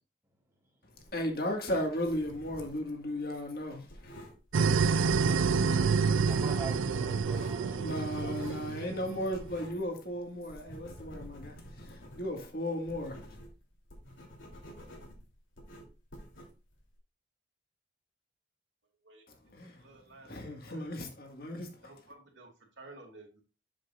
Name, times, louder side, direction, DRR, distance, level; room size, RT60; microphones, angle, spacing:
sound 1, 1.0-2.9 3.2-5.7 6.0-6.6 6.9-9.9 10.2-17.0, equal, 85° left, 3.2 m, -50 dB
voice 1, 1.1-4.1 7.8-11.6 11.8-13.2 19.5-19.8 20.2-21.7, left 1 dB, 50° left, 1.8 m, -35 dB
sound 2, 4.5-9.4, right 5 dB, 90° right, 0.5 m, -28 dB
voice 2, 6.2-7.8 8.1-8.6, right 2 dB, 15° right, 2.6 m, -43 dB
voice 3, 19.8-20.4 20.7-20.8 21.8-22.5 22.8-23.3, right 2 dB, 75° right, 2.4 m, -52 dB
7.6 x 7.5 x 2.5 m
head